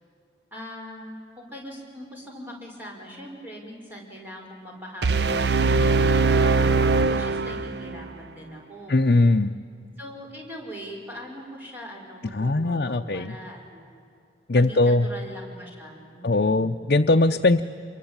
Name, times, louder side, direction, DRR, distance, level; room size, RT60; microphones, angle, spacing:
voice 1, 0.5-9.0 10.0-13.9 14.5-16.6, equal, 10° right, -1 dB, 5.2 m, -41 dB
sound 1, 5.0-8.0, right 4 dB, 75° right, 0.7 m, -21 dB
voice 2, 8.9-9.5 12.3-13.3 14.5-15.1 16.2-17.6, left 2 dB, 60° left, 3 dB, 0.7 m, -20 dB
27.5 x 23.0 x 8.8 m, 2.4 s
head